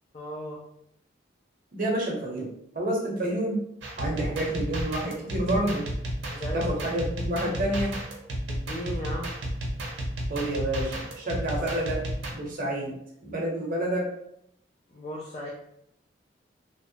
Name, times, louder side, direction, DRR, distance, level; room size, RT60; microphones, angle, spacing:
voice 1, 0.1-0.6 6.3-6.7 8.5-9.3 14.9-15.5, equal, 40° left, -3 dB, 0.4 m, -36 dB
voice 2, 1.7-3.6 4.0-5.9 6.5-8.0 10.3-12.1 12.3-12.9 13.2-14.1, right 1 dB, 50° right, -2 dB, 0.7 m, -29 dB
sound 1, 3.8-12.3, right 1 dB, 85° right, 0.6 m, -32 dB
2.8 x 2.1 x 2.7 m, 0.74 s
head